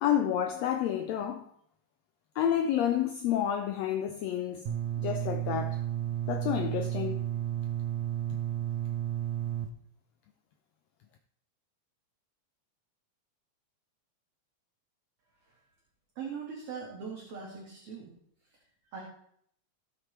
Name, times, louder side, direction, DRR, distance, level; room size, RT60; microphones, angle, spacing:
voice 1, 0.0-1.5 2.4-4.7 5.0-5.8 6.3-7.2 8.3-8.4, left 10 dB, 80° left, 1.5 m, -29 dB
sound 1, 4.7-9.7, right 12 dB, 80° right, 2.2 m, -32 dB
voice 2, 16.2-18.1 18.9-19.0, right 6 dB, 55° right, 2.5 m, -40 dB
16.0 x 6.7 x 3.2 m
omnidirectional pair, 3.6 m